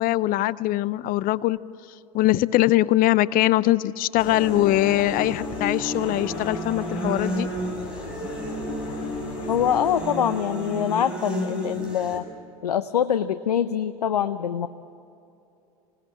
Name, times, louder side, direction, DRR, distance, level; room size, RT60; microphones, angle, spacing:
voice 1, 0.0-1.6 2.1-7.5, left 16 dB, 50° left, 19 dB, 0.7 m, -22 dB
sound 1, 4.2-10.0, left 5 dB, 70° left, 3.3 m, -38 dB
sound 2, 4.2-12.2, right 1 dB, 5° right, 6.6 m, -32 dB
voice 2, 9.5-12.3 12.6-14.7, left 9 dB, 90° left, 11 dB, 0.7 m, -24 dB
26.0 x 19.5 x 7.5 m, 2.7 s
hypercardioid pair, 85°, 19 cm